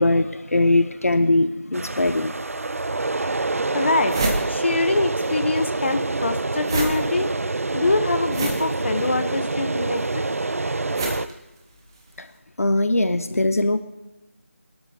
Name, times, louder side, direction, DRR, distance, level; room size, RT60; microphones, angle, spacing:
voice 1, 0.0-2.3 12.2-12.3 12.6-13.8, left 2 dB, 75° left, 10 dB, 0.9 m, -20 dB
sound 1, 1.7-11.3, right 3 dB, 70° right, 0.5 m, -26 dB
sound 2, 2.9-3.0 3.5-3.6 3.8-5.3 5.6-12.1, right 2 dB, 15° right, 1.1 m, -30 dB
voice 2, 3.7-4.2 4.5-7.3 7.7-10.2, left 2 dB, 50° left, 8 dB, 1.1 m, -24 dB
21.5 x 13.0 x 2.9 m, 1.0 s
figure-of-eight pair, 170°, 8 cm